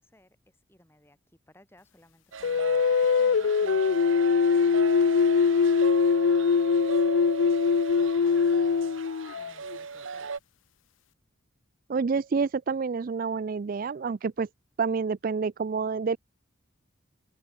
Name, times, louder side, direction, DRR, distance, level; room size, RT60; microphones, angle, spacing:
voice 1, 0.0-2.9 3.1-4.9 6.0-7.6 7.9-9.1 9.3-10.3, left 1 dB, 10° left, 5.3 m, -59 dB
sound 1, 2.3-10.4, right 5 dB, 70° right, 0.9 m, -36 dB
sound 2, 2.4-9.8, left 5 dB, 70° left, 0.4 m, -22 dB
voice 2, 11.9-14.5 14.8-16.2, right 5 dB, 45° right, 0.4 m, -28 dB
head